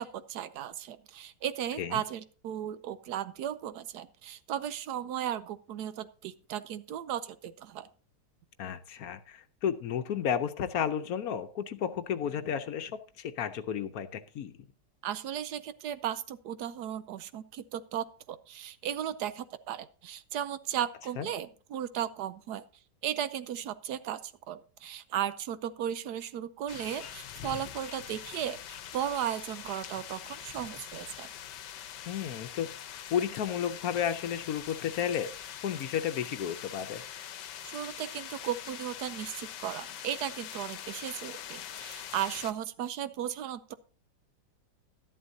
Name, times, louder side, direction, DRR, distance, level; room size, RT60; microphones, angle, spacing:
voice 1, 0.0-7.9 15.0-22.6 23.0-31.3 37.6-43.7, right 10 dB, 75° right, 13 dB, 1.1 m, -36 dB
voice 2, 8.6-14.5 21.2-21.3 32.1-32.7 33.1-35.3 35.6-37.0, left 8 dB, 65° left, 10 dB, 1.1 m, -32 dB
sound 1, 26.7-42.5, left 10 dB, 85° left, 1.4 m, -43 dB
12.5 x 11.0 x 2.7 m, 0.38 s
omnidirectional pair, 1.8 m